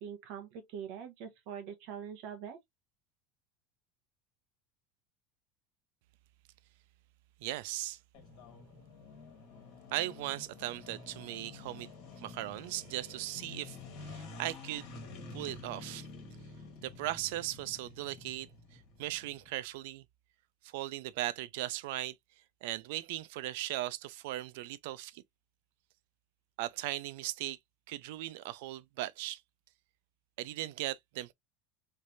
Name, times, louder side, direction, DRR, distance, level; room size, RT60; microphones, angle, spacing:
voice 1, 0.0-2.6, right 8 dB, 50° right, 1.0 m, -43 dB
voice 2, 7.4-8.0 9.9-11.9 12.2-14.9 15.3-16.1 16.8-20.0 20.6-22.2 22.6-25.2 26.6-27.6 27.9-29.4 30.4-31.3, right 15 dB, 70° right, 0.4 m, -38 dB
sound 1, 8.1-19.5, left 3 dB, 45° left, 1.8 m, -49 dB
3.3 x 3.1 x 2.6 m
cardioid pair, 175°, 0 cm